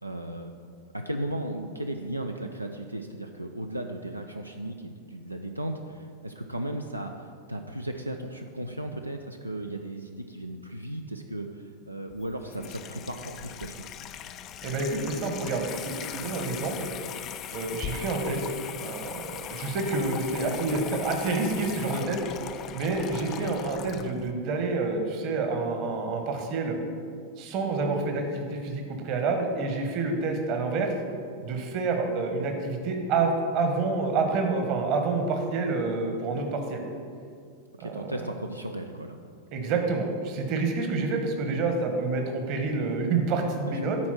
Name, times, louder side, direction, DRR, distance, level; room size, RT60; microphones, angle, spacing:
voice 1, 0.0-0.5 0.9-13.8 23.3-23.6 37.8-39.2 43.6-43.9, right 1 dB, 85° right, 4 dB, 0.4 m, -36 dB
Water tap faucet / Sink (filling or washing), 12.1-24.3, left 9 dB, 35° left, 0.3 m, -39 dB
voice 2, 14.6-16.9 17.5-18.4 18.8-22.2 22.7-26.8 27.4-30.9 31.4-36.8 37.8-38.2 39.5-44.0, right 3 dB, 40° right, 4 dB, 1.1 m, -28 dB
8.5 x 4.3 x 6.0 m, 2.2 s
figure-of-eight pair, 90°, 0 cm